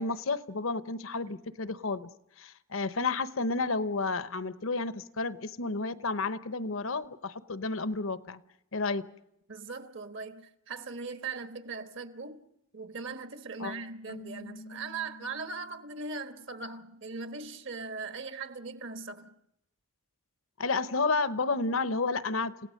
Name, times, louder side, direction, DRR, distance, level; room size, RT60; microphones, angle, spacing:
voice 1, 0.0-2.1 2.4-8.4 8.7-9.1 13.6-13.8 20.6-22.7, left 3 dB, 65° left, 0.9 m, -31 dB
voice 2, 9.5-12.4 12.7-19.4, right 4 dB, 55° right, 1.4 m, -40 dB
Keyboard (musical), 14.1-16.1, left 2 dB, 85° left, 1.4 m, -48 dB
29.5 x 17.0 x 6.5 m
head